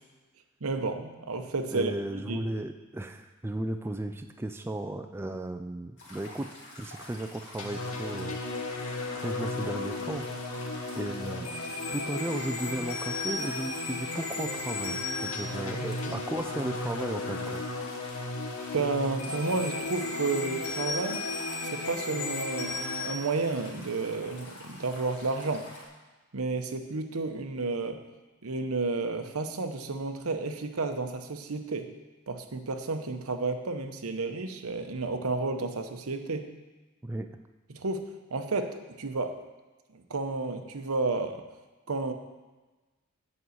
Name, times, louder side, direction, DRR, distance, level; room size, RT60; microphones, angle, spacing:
voice 1, 0.6-1.9 2.3-2.4 18.7-21.2 21.6-25.7 26.3-28.0 28.4-31.9 32.3-36.5 37.7-39.4 39.9-41.5 41.9-42.1, right 3 dB, 80° right, 7 dB, 0.8 m, -31 dB
voice 2, 1.7-6.5 6.8-8.4 9.1-10.3 11.0-11.5 11.9-17.7 37.0-37.3, right 1 dB, 10° right, 6 dB, 0.3 m, -35 dB
sound 1, 6.0-25.8, left 2 dB, 55° left, 2.0 m, -47 dB
sound 2, 7.6-23.1, left 2 dB, 75° left, 1.2 m, -34 dB
8.4 x 5.3 x 7.8 m, 1.2 s
head